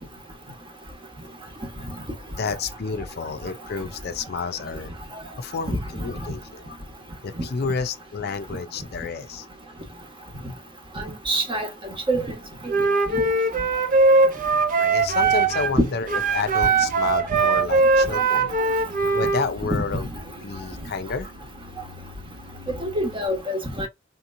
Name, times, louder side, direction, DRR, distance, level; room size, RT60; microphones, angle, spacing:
voice 1, 2.4-4.9 5.4-6.6 7.2-9.5 14.8-18.5 19.1-20.1 20.4-21.3, left 5 dB, 55° left, 0.5 m, -30 dB
voice 2, 11.3-11.7 12.1-12.2 13.1-13.3 15.7-15.8 22.8-23.9, right 1 dB, 25° right, 1.1 m, -24 dB
Wind instrument woodwind instrument, 12.7-15.8 16.1-19.5, right 3 dB, 45° right, 0.7 m, -20 dB
sound 1, 15.0-23.3, left 3 dB, 85° right, 1.3 m, -44 dB
4.3 x 2.9 x 2.5 m
head